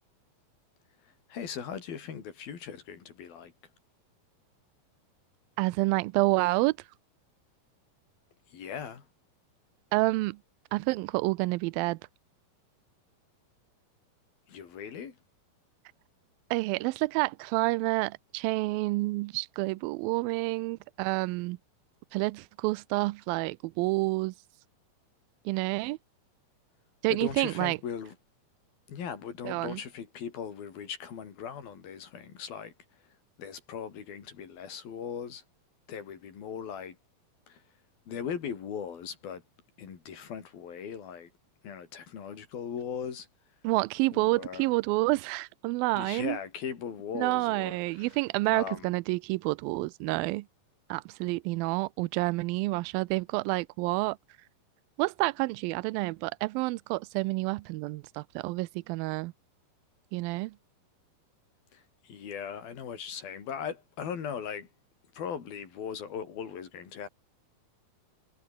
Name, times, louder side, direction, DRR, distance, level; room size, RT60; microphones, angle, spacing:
voice 1, 1.3-3.5 8.5-9.1 14.5-15.2 27.1-28.2 28.9-32.7 33.4-35.4 35.9-37.0 37.5-37.6 38.1-39.4 39.8-41.3 41.6-43.3 44.1-44.7 45.9-48.2 48.5-48.9 61.7-64.7 65.2-67.1, left 7 dB, 75° left, 5.3 m, -39 dB
voice 2, 5.6-6.8 9.9-10.4 10.7-12.0 16.5-21.6 22.1-24.3 25.5-26.0 27.0-27.8 29.4-29.8 43.6-46.4 47.2-50.5 50.9-54.2 55.0-59.3 60.1-60.5, right 22 dB, 85° right, 2.4 m, -29 dB
omnidirectional pair, 4.2 m